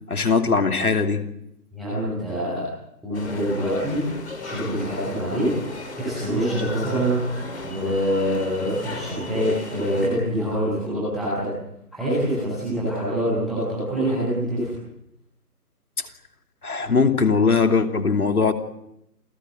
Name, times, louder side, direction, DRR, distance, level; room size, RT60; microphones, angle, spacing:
voice 1, 0.1-1.2 16.6-18.5, left 4 dB, 65° left, 6 dB, 2.9 m, -20 dB
voice 2, 1.7-2.6 3.0-4.0 4.4-7.2 7.6-11.5 11.9-14.7, equal, ahead, -12 dB, 1.1 m, -25 dB
sound 1, 3.1-10.1, left 2 dB, 45° left, 4.4 m, -36 dB
28.5 x 15.5 x 7.8 m, 0.82 s
figure-of-eight pair, 175°, 48 cm